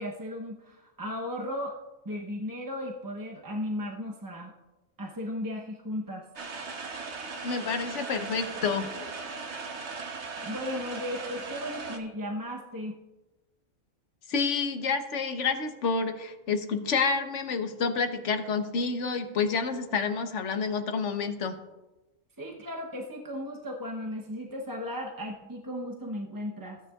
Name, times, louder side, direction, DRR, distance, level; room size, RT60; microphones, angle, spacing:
voice 1, 0.0-1.8 2.0-4.5 5.0-6.3 10.4-13.0 22.4-26.8, left 1 dB, 20° right, -1 dB, 0.7 m, -35 dB
sound 1, 6.4-12.0, right 4 dB, 65° right, 1.3 m, -38 dB
voice 2, 7.4-8.9 14.3-21.6, left 5 dB, 70° left, 7 dB, 1.2 m, -29 dB
16.5 x 9.6 x 2.3 m, 1.1 s
omnidirectional pair, 1.3 m